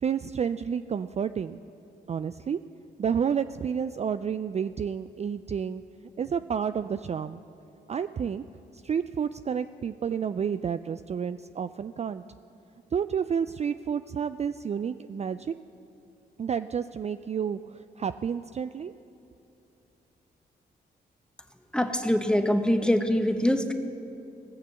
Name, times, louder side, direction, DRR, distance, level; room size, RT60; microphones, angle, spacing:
voice 1, 0.0-1.6 2.1-2.6 3.0-5.8 6.2-7.4 7.9-8.4 8.7-12.2 12.9-15.5 16.4-18.9, right 7 dB, 35° right, 11 dB, 0.4 m, -30 dB
voice 2, 21.7-23.7, equal, 5° left, 6 dB, 1.2 m, -24 dB
17.5 x 6.8 x 6.8 m, 2.8 s
supercardioid pair, 50°, 20 cm